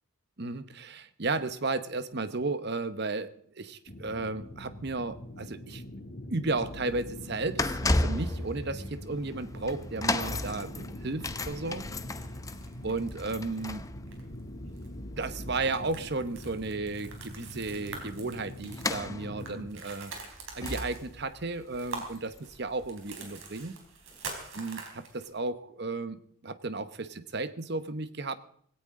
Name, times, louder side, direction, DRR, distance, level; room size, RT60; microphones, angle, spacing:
voice 1, 0.4-5.8 6.3-11.9 12.8-13.8 15.2-20.1 20.5-23.8 24.5-28.3, right 3 dB, 50° right, 12 dB, 1.0 m, -34 dB
sound 1, 3.9-19.7, left 1 dB, 45° left, 2.5 m, -44 dB
sound 2, 6.5-22.9 23.1-23.4 24.1-24.2, left 2 dB, 15° left, 0.7 m, -36 dB
sound 3, 7.6-9.0 10.1-10.9 11.2-11.3 11.7-13.2 13.6-13.8 14.1-14.4 14.8-14.9 15.3-25.3, right 3 dB, 70° right, 4.1 m, -45 dB
18.5 x 17.0 x 3.8 m, 0.63 s
head